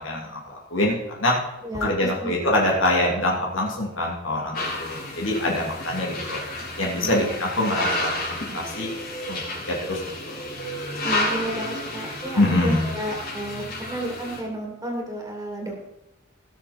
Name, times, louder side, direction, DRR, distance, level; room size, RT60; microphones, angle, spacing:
voice 1, 0.0-1.4 1.8-6.4 6.8-8.9 9.3-9.4 9.7-10.4 12.4-12.9, left 1 dB, 65° left, -2 dB, 3.0 m, -24 dB
voice 2, 1.6-2.4 7.0-7.4 11.0-15.8, right 1 dB, 15° right, 0 dB, 2.8 m, -32 dB
sound 1, 4.5-14.4, left 1 dB, 45° left, 4.2 m, -31 dB
18.0 x 6.9 x 4.4 m, 0.90 s
head